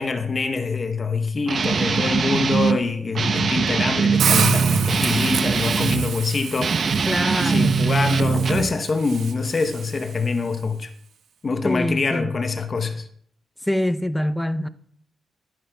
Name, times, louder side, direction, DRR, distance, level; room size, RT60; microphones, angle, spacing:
voice 1, 0.0-6.9 7.4-10.9 11.4-13.1, left 4 dB, 40° left, 0.9 m, -25 dB
Guitar, 1.5-2.8 3.2-6.1 6.6-8.7, right 5 dB, 50° right, 0.7 m, -22 dB
Hiss, 4.2-10.3, right 7 dB, 80° right, 1.4 m, -29 dB
voice 2, 7.1-7.9 11.6-12.4 13.7-14.7, left 1 dB, 5° left, 0.5 m, -24 dB
25.0 x 9.3 x 2.3 m
cardioid pair, 100°, 0 cm